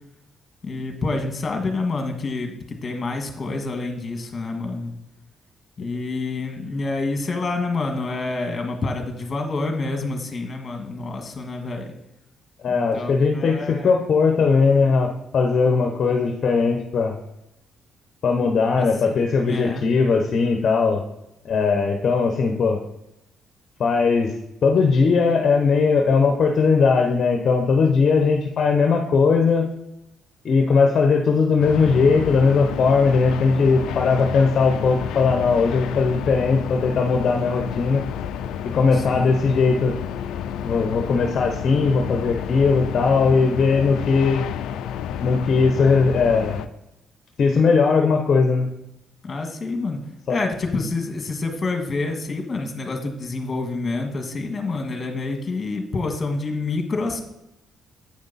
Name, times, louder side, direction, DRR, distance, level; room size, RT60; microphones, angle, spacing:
voice 1, 0.6-4.9 5.8-11.9 12.7-13.9 18.8-19.9 38.9-39.3 49.2-50.0 50.3-57.2, left 3 dB, 35° left, 3 dB, 1.6 m, -28 dB
voice 2, 12.6-17.2 18.2-21.0 21.4-22.8 23.8-29.7 30.4-38.0 38.7-40.0 40.6-44.4 45.2-46.6 47.4-48.7 50.3-50.4, left 4 dB, 55° left, 3 dB, 0.8 m, -19 dB
sound 1, 31.6-46.7, left 9 dB, 85° left, 0.3 m, -30 dB
8.7 x 5.1 x 4.1 m, 0.86 s
cardioid pair, 90°, 0 cm